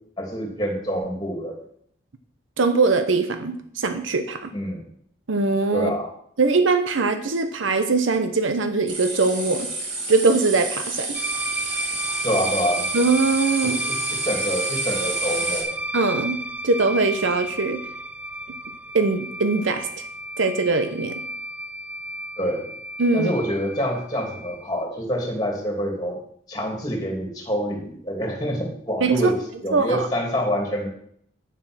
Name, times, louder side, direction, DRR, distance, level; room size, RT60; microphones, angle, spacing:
voice 1, 0.2-1.6 4.5-4.8 5.7-6.1 12.2-12.8 13.6-15.7 22.4-22.7 23.1-26.2 26.5-29.3 29.6-30.9, equal, 20° left, 1 dB, 2.7 m, -26 dB
voice 2, 2.6-4.5 5.3-5.9 6.4-9.7 10.1-11.2 12.9-13.8 15.9-16.4 16.6-17.8 18.9-19.9 20.4-21.1 23.0-23.3 29.0-29.3 29.7-30.1, right 3 dB, 85° right, 9 dB, 0.9 m, -21 dB
sound 1, 8.9-15.6, right 2 dB, 40° right, 2.8 m, -30 dB
sound 2, 11.1-24.8, right 1 dB, 10° right, 0.4 m, -32 dB
9.5 x 7.5 x 6.2 m, 0.65 s
head